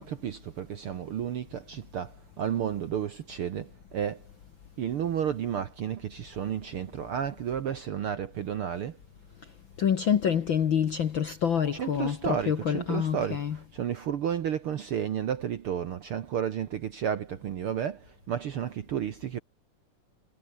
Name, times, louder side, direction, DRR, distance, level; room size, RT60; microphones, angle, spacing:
voice 1, 0.0-4.3 4.8-9.0 11.7-19.4, right 9 dB, 60° right, 1.5 m, -32 dB
voice 2, 9.8-13.6, left 8 dB, 55° left, 1.4 m, -27 dB
omnidirectional pair, 3.7 m